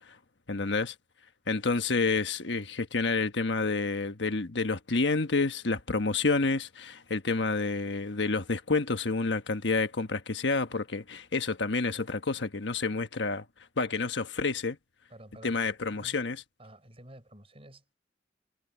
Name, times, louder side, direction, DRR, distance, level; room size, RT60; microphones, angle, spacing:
voice 1, 0.5-0.9 1.5-13.4 13.8-14.8 15.4-16.4, left 3 dB, 85° left, 1.3 m, -29 dB
voice 2, 15.1-16.2 16.6-18.0, right 1 dB, 35° right, 6.6 m, -51 dB
head